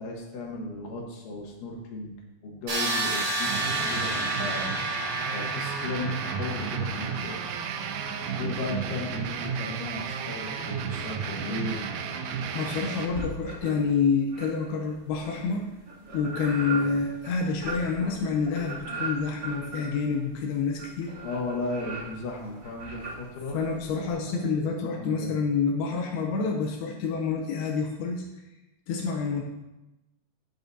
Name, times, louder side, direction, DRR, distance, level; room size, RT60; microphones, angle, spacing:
voice 1, 0.0-2.2 2.4-4.7 5.3-7.5 8.3-11.9 16.7-16.9 21.2-23.6 24.0-24.5 24.8-25.4, left 2 dB, 65° left, 0 dB, 2.6 m, -36 dB
sound 1, 2.7-8.5, right 2 dB, 50° right, 4.8 m, -31 dB
sound 2, 3.5-13.1, right 6 dB, 80° right, 1.9 m, -33 dB
voice 2, 12.5-15.7 16.1-21.1 23.5-28.2 28.9-29.4, left 5 dB, 85° left, 1 dB, 2.7 m, -28 dB
sound 3, 13.1-13.9 14.3-24.1, right 3 dB, 30° right, 2.4 m, -38 dB
15.0 x 6.0 x 2.7 m, 1.0 s
omnidirectional pair, 4.6 m